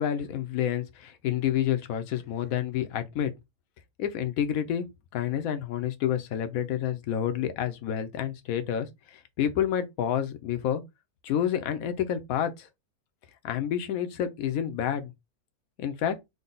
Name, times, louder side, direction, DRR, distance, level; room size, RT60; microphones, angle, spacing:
voice 1, 0.0-3.3 4.0-4.9 5.1-10.8 11.2-12.7 13.4-15.1 15.8-16.1, left 10 dB, 75° left, 1.1 m, -29 dB
3.8 x 2.2 x 3.8 m
omnidirectional pair, 1.5 m